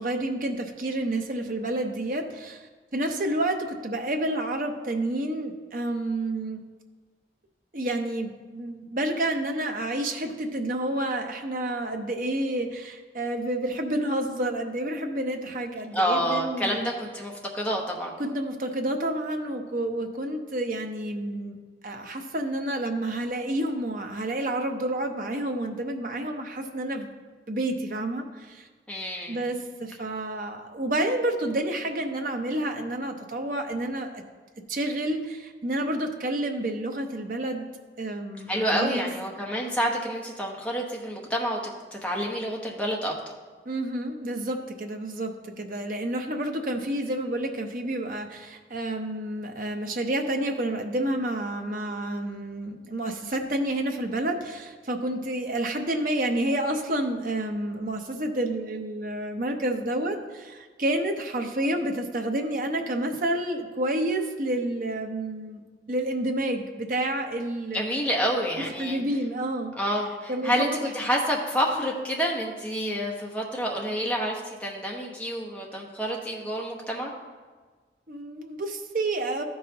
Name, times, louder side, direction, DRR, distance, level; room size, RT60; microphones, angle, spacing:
voice 1, 0.0-6.6 7.7-16.9 18.2-21.6 21.8-27.1 27.5-28.7 29.3-34.2 34.7-37.7 38.0-39.2 43.7-65.6 65.9-67.8 68.6-69.7 70.0-70.9 78.1-79.4, right 1 dB, 50° right, 4 dB, 0.7 m, -29 dB
voice 2, 15.9-18.1 28.9-29.4 38.5-41.6 41.9-43.1 67.7-69.0 69.7-77.1, equal, 5° left, -2 dB, 1.0 m, -28 dB
13.0 x 5.5 x 2.9 m, 1.4 s
head